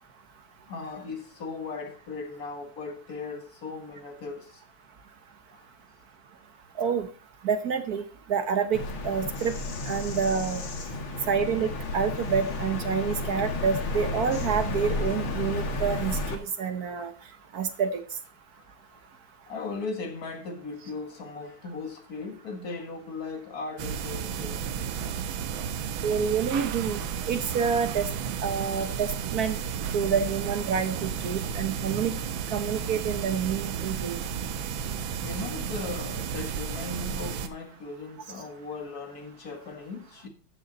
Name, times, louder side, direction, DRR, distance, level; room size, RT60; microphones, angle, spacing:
voice 1, 0.7-4.6 5.5-5.7 11.0-11.3 17.7-17.8 18.5-19.1 19.5-24.8 25.7-26.0 31.3-31.6 35.2-40.3, left 4 dB, 45° left, 2.1 m, -38 dB
voice 2, 6.8-7.1 7.4-9.5 9.9-10.6 11.3-17.1 17.5-18.0 26.0-27.0 27.3-28.1 28.4-29.6 29.9-32.1 32.5-34.2, right 6 dB, 50° right, 1.4 m, -28 dB
Bird vocalization bird call bird song, 8.7-16.3, left 2 dB, 70° left, 2.5 m, -32 dB
sound 1, 23.8-37.5, right 7 dB, 75° right, 1.7 m, -33 dB
13.5 x 7.0 x 4.0 m
omnidirectional pair, 2.3 m